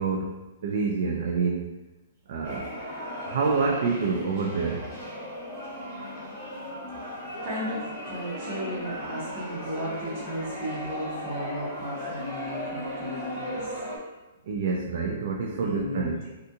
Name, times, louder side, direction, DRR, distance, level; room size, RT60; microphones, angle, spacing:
voice 1, 0.0-1.7 2.3-2.7 3.2-4.9 14.5-16.2, right 4 dB, 50° right, 1 dB, 0.3 m, -27 dB
sound 1, 2.4-14.0, left 1 dB, 5° right, 1.3 m, -36 dB
voice 2, 7.0-13.8 15.5-16.1, equal, 25° right, -12 dB, 0.9 m, -35 dB
2.7 x 2.4 x 3.5 m, 1.1 s
hypercardioid pair, 170°, 0 cm